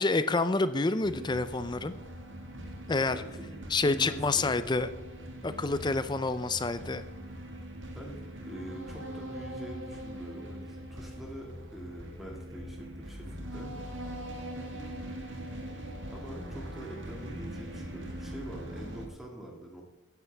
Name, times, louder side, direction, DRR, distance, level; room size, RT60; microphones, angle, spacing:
voice 1, 0.0-1.9 2.9-3.2 3.7-4.9 5.4-7.0, left 3 dB, 20° left, 12 dB, 0.4 m, -28 dB
sound 1, 1.0-19.1, equal, 60° right, 1.6 m, -42 dB
voice 2, 3.1-4.8 7.9-13.7 14.7-15.5 16.1-19.8, right 1 dB, ahead, -1 dB, 2.0 m, -45 dB
15.0 x 9.6 x 3.4 m, 0.99 s
head